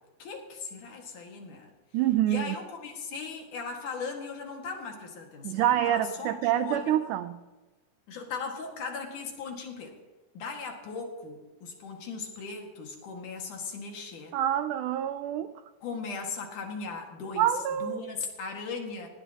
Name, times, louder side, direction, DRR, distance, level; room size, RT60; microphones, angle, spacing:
voice 1, 0.2-1.7 2.3-7.0 8.1-9.9 10.3-14.4 15.8-17.5 17.8-19.1, left 4 dB, 60° left, 2 dB, 3.4 m, -38 dB
voice 2, 1.9-2.6 5.4-7.4 14.3-15.5 17.4-18.2, right 11 dB, 85° right, 11 dB, 1.8 m, -27 dB
20.0 x 16.5 x 3.0 m, 1.2 s
omnidirectional pair, 4.2 m